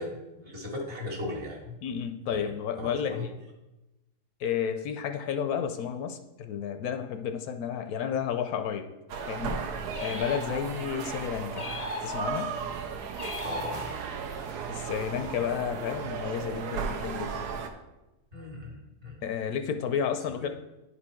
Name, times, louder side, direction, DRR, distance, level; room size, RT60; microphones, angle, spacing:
voice 1, 0.0-1.7 2.3-2.5 2.8-3.2 13.4-13.9 15.1-15.3 18.3-19.2 20.4-20.5, left 1 dB, 45° right, -1 dB, 1.7 m, -38 dB
voice 2, 1.8-3.3 4.4-8.9 9.3-9.6 10.0-11.7 12.0-12.5 14.7-17.5 19.2-20.5, left 8 dB, 75° left, 7 dB, 1.0 m, -31 dB
sound 1, 9.1-17.7, right 6 dB, 85° right, 1.2 m, -35 dB
sound 2, 9.9-10.9 11.5-12.6 13.1-14.3, left 3 dB, 60° left, 0.4 m, -38 dB
9.9 x 4.4 x 4.3 m, 1.0 s
omnidirectional pair, 1.7 m